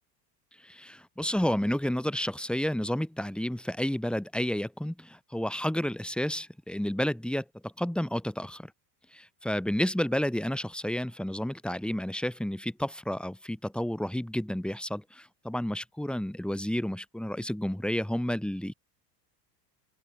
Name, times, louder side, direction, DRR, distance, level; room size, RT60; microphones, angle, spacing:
voice 1, 0.6-8.7 9.1-18.7, equal, ahead, 4.2 m, -31 dB
open air
hypercardioid pair, 95°, 48 cm